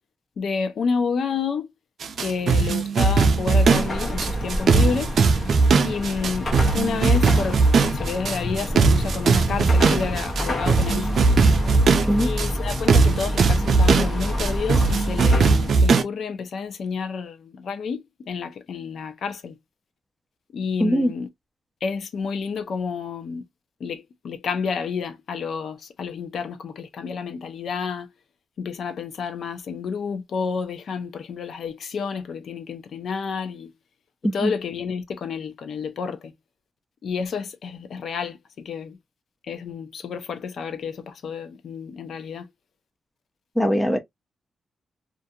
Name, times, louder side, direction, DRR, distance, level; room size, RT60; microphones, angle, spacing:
voice 1, 0.4-1.7 2.2-5.1 5.8-11.3 12.2-19.6 20.5-21.3 21.8-23.4 23.8-28.1 28.6-33.7 34.2-36.3 37.0-39.0 39.5-42.5, left 5 dB, 65° left, 0.5 m, -30 dB
sound 1, 2.0-16.0, right 4 dB, 60° right, 0.5 m, -19 dB
Car passing by / Traffic noise roadway noise / Engine, 3.2-15.9, equal, 40° left, 0.8 m, -28 dB
voice 2, 20.8-21.1 34.2-34.5 43.6-44.0, equal, 5° left, 0.5 m, -21 dB
2.5 x 2.3 x 2.6 m
wide cardioid pair, 140°, 0 cm